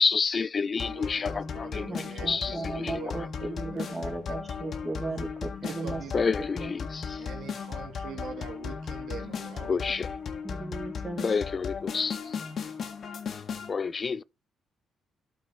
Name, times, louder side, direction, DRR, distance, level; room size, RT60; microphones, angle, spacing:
voice 1, 0.0-1.9 2.3-2.5 2.8-2.9 6.1-7.0 9.7-10.0 11.2-12.2 13.7-14.2, left 5 dB, 40° left, 0.4 m, -28 dB
sound 1, 0.8-13.7, left 6 dB, 55° left, 1.7 m, -36 dB
voice 2, 0.8-3.8 4.3-4.4 5.6-6.1 7.2-9.9 11.9-12.0, right 6 dB, 75° right, 2.0 m, -44 dB
voice 3, 1.9-6.0 6.5-6.7 10.4-11.4, right 2 dB, 20° right, 2.8 m, -36 dB
12.5 x 4.4 x 4.5 m
cardioid pair, 90°, 0 cm